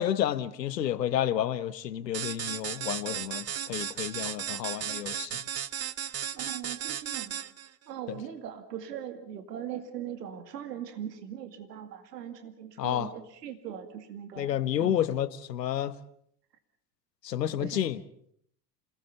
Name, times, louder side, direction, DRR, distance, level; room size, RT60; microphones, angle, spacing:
voice 1, 0.0-5.3 12.8-13.1 14.4-16.0 17.2-18.0, left 11 dB, 80° left, 1.2 m, -30 dB
sound 1, 2.1-7.7, right 10 dB, 30° right, 1.1 m, -35 dB
voice 2, 6.3-7.4 7.9-15.0 17.6-17.8, right 9 dB, 80° right, 2.2 m, -40 dB
27.5 x 18.5 x 7.0 m
hypercardioid pair, 70°, 48 cm